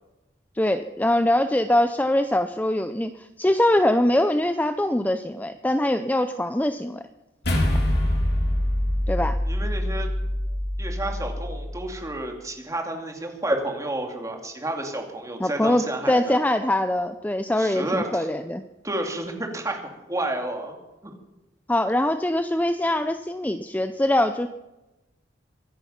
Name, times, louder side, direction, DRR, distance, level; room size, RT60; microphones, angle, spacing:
voice 1, 0.6-7.0 9.1-9.4 15.4-18.6 21.7-24.5, left 1 dB, 10° left, 9 dB, 0.5 m, -23 dB
sound 1, 7.4-12.0, left 1 dB, 60° left, 3.5 m, -25 dB
voice 2, 9.5-10.1 10.8-16.4 17.6-18.3 18.8-20.8 21.0-21.1, right 1 dB, 20° right, 2 dB, 2.6 m, -30 dB
24.0 x 10.5 x 5.7 m, 1.0 s
head